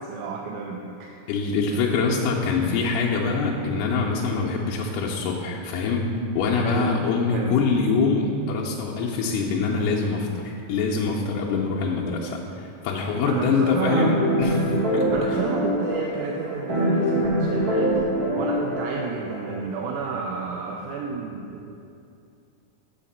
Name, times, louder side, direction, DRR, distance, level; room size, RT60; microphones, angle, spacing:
voice 1, 0.0-1.2 6.6-6.9 7.3-7.6 13.3-14.2 15.1-21.8, right 5 dB, 80° right, 0 dB, 1.9 m, -31 dB
voice 2, 1.3-15.4, left 4 dB, 85° left, -3 dB, 2.2 m, -24 dB
sound 1, 13.8-19.5, equal, 45° right, 1.3 m, -24 dB
6.5 x 5.5 x 5.4 m, 2.5 s
omnidirectional pair, 3.7 m